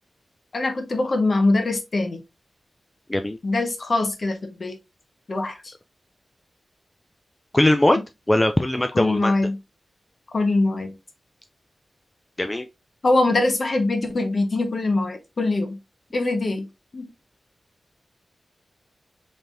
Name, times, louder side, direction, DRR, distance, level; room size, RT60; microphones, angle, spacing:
voice 1, 0.5-2.2 3.4-4.8 5.3-5.7 8.9-9.6 10.3-10.9 13.0-15.8 16.1-16.7 16.9-17.1, left 2 dB, 60° left, 0.9 m, -23 dB
voice 2, 7.5-8.0 8.3-9.3 12.4-12.7, left 1 dB, 20° left, 0.4 m, -20 dB
3.3 x 3.2 x 2.6 m
cardioid pair, 55°, 0 cm